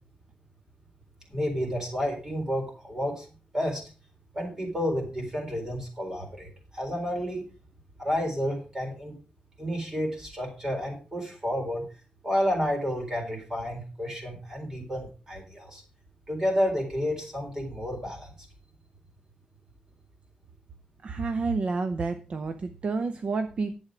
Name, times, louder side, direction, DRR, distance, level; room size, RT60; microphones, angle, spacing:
voice 1, 1.3-3.3 3.5-3.8 4.3-6.5 6.7-7.4 8.0-9.1 9.6-11.8 12.2-15.8 16.3-18.3, equal, 20° right, 1 dB, 4.0 m, -30 dB
voice 2, 21.0-23.8, right 4 dB, 45° right, 10 dB, 0.7 m, -29 dB
10.5 x 8.0 x 5.0 m, 0.35 s
wide cardioid pair, 165°, 3 cm